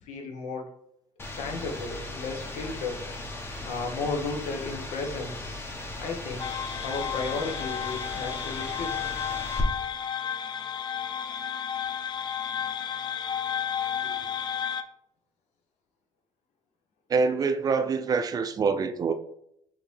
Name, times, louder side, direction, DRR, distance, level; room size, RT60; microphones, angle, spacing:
voice 1, 0.0-0.6 1.4-3.0 3.6-5.7 6.0-6.4 6.8-9.0 14.0-14.1, left 3 dB, 80° left, 0.9 m, -34 dB
sound 1, 1.2-9.6, left 2 dB, 20° left, 0.8 m, -38 dB
sound 2, 6.4-14.8, left 8 dB, 40° left, 0.4 m, -32 dB
voice 2, 17.1-19.1, right 5 dB, 35° right, 0.4 m, -25 dB
5.0 x 2.8 x 3.2 m
cardioid pair, 100°, 11 cm